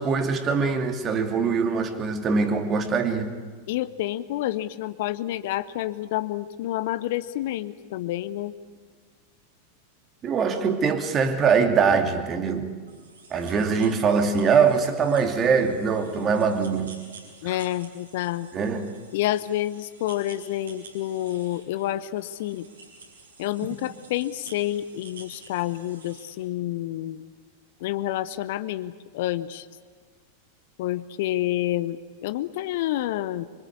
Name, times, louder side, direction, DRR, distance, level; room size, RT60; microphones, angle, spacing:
voice 1, 0.0-3.3 10.2-12.7 13.3-16.9 17.4-17.6 18.5-18.9, right 5 dB, 25° right, 6 dB, 2.5 m, -23 dB
voice 2, 3.7-8.5 17.4-18.5 19.1-22.6 23.4-27.3 27.8-29.7 30.8-33.5, left 14 dB, 50° left, 15 dB, 0.8 m, -29 dB
sound 1, 12.9-26.3, right 4 dB, 70° right, 6.1 m, -50 dB
25.0 x 24.5 x 8.5 m, 1.5 s
figure-of-eight pair, 90°, 0 cm